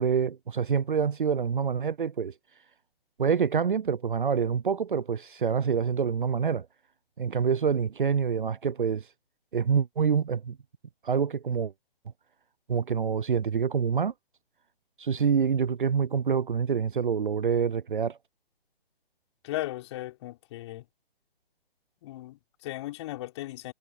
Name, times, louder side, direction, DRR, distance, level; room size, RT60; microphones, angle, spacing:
voice 1, 0.0-2.3 3.2-6.7 7.2-9.0 9.5-10.6 11.0-11.7 12.7-14.1 15.0-18.2, right 6 dB, 55° right, 0.6 m, -26 dB
voice 2, 19.4-20.8 22.0-23.7, left 16 dB, 30° left, 6.0 m, -37 dB
figure-of-eight pair, 135°, 30 cm